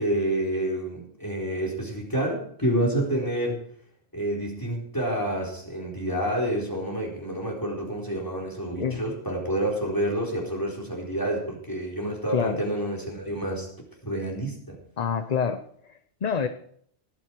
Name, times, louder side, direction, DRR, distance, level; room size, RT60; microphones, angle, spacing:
voice 1, 0.0-3.6 4.1-13.7 14.1-14.8, right 1 dB, 20° left, -1 dB, 4.1 m, -28 dB
voice 2, 8.7-9.0 12.3-12.6 15.0-16.5, left 6 dB, 45° left, 9 dB, 0.8 m, -27 dB
18.5 x 9.4 x 4.6 m, 0.63 s
omnidirectional pair, 1.1 m